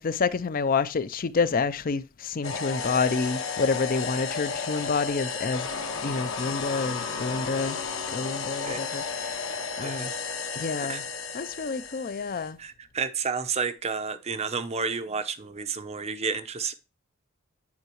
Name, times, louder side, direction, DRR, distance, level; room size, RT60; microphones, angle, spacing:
voice 1, 0.0-5.7 6.0-7.8 8.1-10.1 10.6-11.0 11.3-12.6, left 4 dB, 40° left, 0.5 m, -28 dB
sound 1, 2.4-12.5, left 5 dB, 70° left, 1.3 m, -33 dB
voice 2, 9.8-10.1 10.9-11.0 12.6-16.7, right 5 dB, 30° right, 0.6 m, -31 dB
9.6 x 4.7 x 3.0 m
head